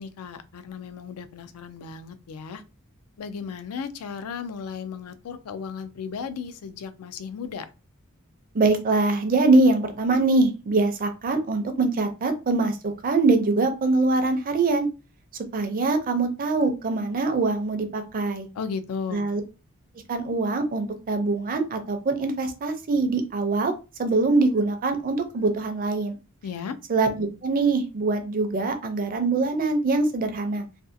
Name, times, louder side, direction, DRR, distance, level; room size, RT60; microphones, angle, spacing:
voice 1, 0.0-2.6 3.2-7.7 18.5-19.2 26.4-26.8, left 6 dB, 90° left, 0.4 m, -35 dB
voice 2, 8.5-14.9 15.5-18.5 19.1-19.4 20.1-23.7 24.0-26.2 26.9-30.6, right 3 dB, 40° right, 0.4 m, -23 dB
2.6 x 2.3 x 2.5 m
head